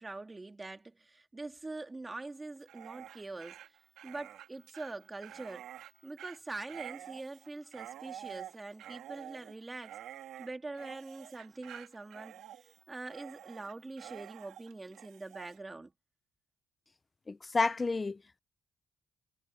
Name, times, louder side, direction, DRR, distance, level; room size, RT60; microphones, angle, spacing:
voice 1, 0.0-3.6 4.0-5.6 6.0-10.0 10.4-12.5 12.9-15.9, right 2 dB, 20° right, 2.8 m, -44 dB
Dog, 2.6-15.6, right 11 dB, 80° right, 4.0 m, -49 dB
voice 2, 17.3-18.4, left 3 dB, 25° left, 0.7 m, -31 dB
cardioid pair, 95°, 0 cm